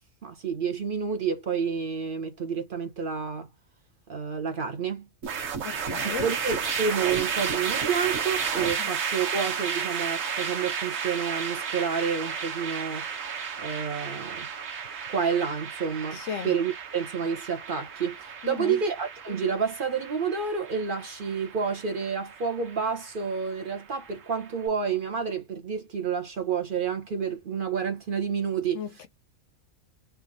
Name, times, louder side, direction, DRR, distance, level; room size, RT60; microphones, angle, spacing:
voice 1, 0.2-3.5 4.1-5.0 6.2-13.1 13.6-14.5 15.1-28.8, right 6 dB, 50° right, 0.8 m, -29 dB
sound 1, 5.2-24.5, right 6 dB, 75° right, 1.5 m, -33 dB
voice 2, 5.6-6.3 8.8-8.9 16.1-16.5 18.4-18.8 28.7-29.1, left 8 dB, 70° left, 0.8 m, -35 dB
3.5 x 2.5 x 3.9 m
omnidirectional pair, 1.4 m